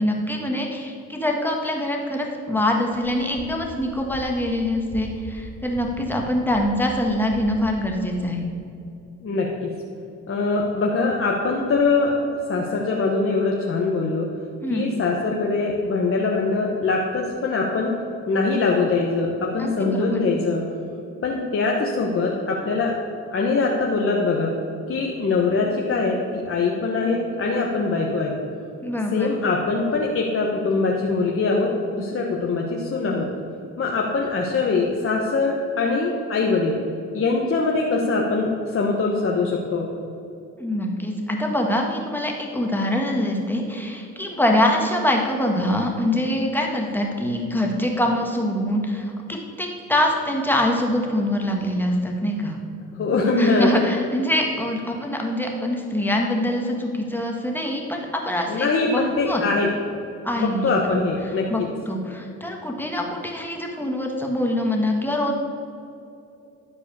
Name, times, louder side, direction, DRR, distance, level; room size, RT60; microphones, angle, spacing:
voice 1, 0.0-8.4 14.6-14.9 19.6-20.2 28.8-29.3 40.6-52.6 53.4-59.4 60.2-60.9 61.5-65.4, left 1 dB, 5° left, 1 dB, 1.7 m, -24 dB
sound 1, 2.8-7.9, equal, 40° right, 2.7 m, -41 dB
voice 2, 9.2-9.7 10.3-12.1 12.5-14.3 14.7-17.9 18.3-20.7 21.2-22.9 23.3-24.6 24.9-28.3 29.1-33.3 33.8-36.8 37.1-39.9 52.9-53.8 58.5-59.7 60.4-61.7, left 3 dB, 45° left, -2 dB, 1.2 m, -22 dB
12.0 x 4.8 x 6.9 m, 2.7 s
cardioid pair, 90°, 30 cm